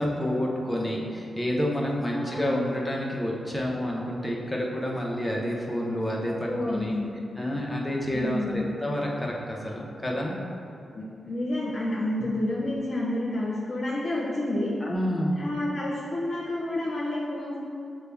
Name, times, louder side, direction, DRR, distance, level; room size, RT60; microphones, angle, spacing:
voice 1, 0.0-7.0 7.4-10.4 12.2-12.3 14.8-15.4, equal, 10° left, -2 dB, 0.8 m, -29 dB
voice 2, 2.0-2.6 6.5-7.1 8.1-8.7 10.9-14.7 15.3-17.6, left 1 dB, 55° left, -7 dB, 0.8 m, -29 dB
6.5 x 2.3 x 3.4 m, 2.6 s
cardioid pair, 75°, 0 cm